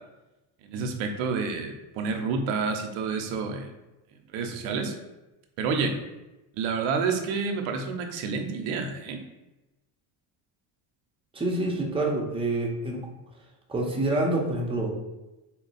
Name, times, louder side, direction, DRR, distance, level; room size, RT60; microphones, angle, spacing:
voice 1, 0.6-3.7 4.3-4.9 5.6-5.9 6.5-9.2, right 5 dB, 85° right, 4 dB, 0.7 m, -29 dB
voice 2, 11.3-13.0 13.7-14.9, right 2 dB, 10° right, -2 dB, 0.8 m, -27 dB
4.1 x 2.2 x 4.0 m, 1.0 s
cardioid pair, 110°, 46 cm